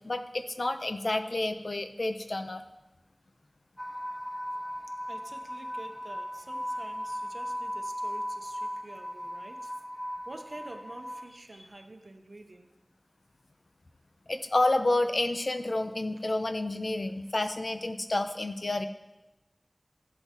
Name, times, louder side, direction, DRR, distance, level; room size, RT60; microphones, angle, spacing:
voice 1, 0.0-2.6 14.3-18.9, left 2 dB, 75° left, 0.6 m, -29 dB
sound 1, 3.8-11.3, equal, 10° left, 0.8 m, -37 dB
voice 2, 5.1-9.7 10.3-12.7 16.2-16.3, right 2 dB, 80° right, 0.8 m, -48 dB
14.5 x 8.0 x 2.9 m
wide cardioid pair, 40°, 0 cm